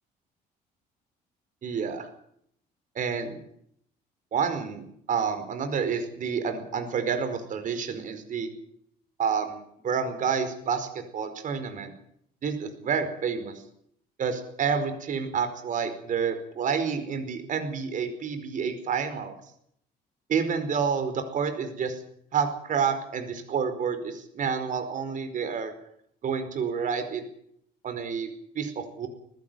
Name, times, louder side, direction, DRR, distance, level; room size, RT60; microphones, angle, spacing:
voice 1, 1.6-2.1 2.9-3.4 4.3-8.5 9.2-11.9 12.4-13.5 14.2-19.3 20.3-22.0 22.3-25.7 26.2-27.2 27.8-28.3 28.5-29.1, right 6 dB, 50° right, 8 dB, 4.9 m, -29 dB
20.5 x 16.0 x 9.4 m, 0.70 s
cardioid pair, 110°, 17 cm